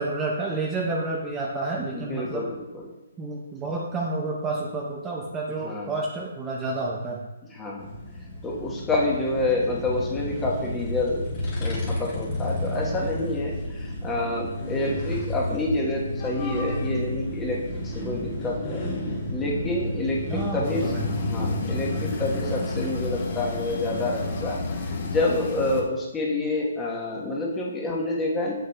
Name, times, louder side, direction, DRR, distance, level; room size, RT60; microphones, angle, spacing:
voice 1, 0.0-2.5 3.2-7.3 20.3-21.1, right 2 dB, 15° right, -2 dB, 0.5 m, -30 dB
voice 2, 1.9-2.9 5.6-5.9 7.5-7.9 8.4-11.3 11.6-18.8 19.3-28.5, left 2 dB, 10° left, -2 dB, 1.1 m, -28 dB
sound 1, 7.8-25.8, left 1 dB, 30° left, 1.9 m, -31 dB
sound 2, 20.6-25.8, left 4 dB, 50° left, 0.9 m, -34 dB
7.4 x 6.6 x 2.3 m, 1.0 s
hypercardioid pair, 150°, 0 cm